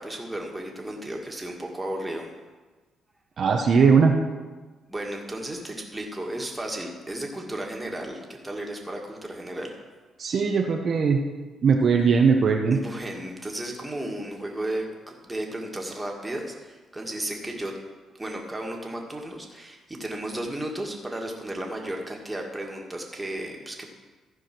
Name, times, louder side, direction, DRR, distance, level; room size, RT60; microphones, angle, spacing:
voice 1, 0.0-2.3 4.9-9.7 12.7-17.7 18.2-23.9, right 1 dB, 15° right, 0 dB, 2.0 m, -34 dB
voice 2, 3.4-4.2 10.2-11.2 11.6-12.8, right 5 dB, 55° right, 2 dB, 0.9 m, -19 dB
14.5 x 4.9 x 6.1 m, 1.3 s
cardioid pair, 90°, 0 cm